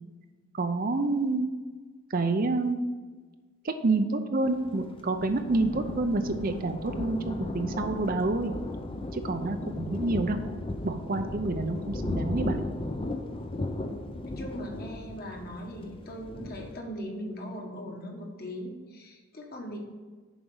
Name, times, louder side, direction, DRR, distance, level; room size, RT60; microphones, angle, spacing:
voice 1, 0.5-1.5 2.1-2.8 3.6-8.5 9.1-10.4 10.8-12.7, right 3 dB, 40° right, 7 dB, 0.5 m, -28 dB
Thunder, 4.4-16.8, left 2 dB, 25° left, 0.5 m, -36 dB
voice 2, 13.8-19.8, equal, 45° left, 1 dB, 1.5 m, -40 dB
7.1 x 5.1 x 7.0 m, 1.4 s
head